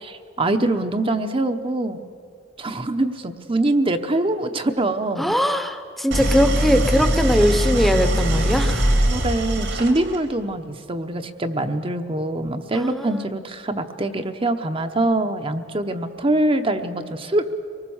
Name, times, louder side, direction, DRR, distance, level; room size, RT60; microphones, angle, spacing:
voice 1, 0.0-2.0 2.6-5.4 9.1-17.5, right 2 dB, 30° right, 7 dB, 0.9 m, -24 dB
voice 2, 5.2-8.9 12.7-13.2, equal, ahead, 9 dB, 0.9 m, -21 dB
Idling, 6.1-10.3, right 1 dB, 75° right, 2.3 m, -21 dB
24.5 x 19.5 x 7.2 m, 2.3 s
head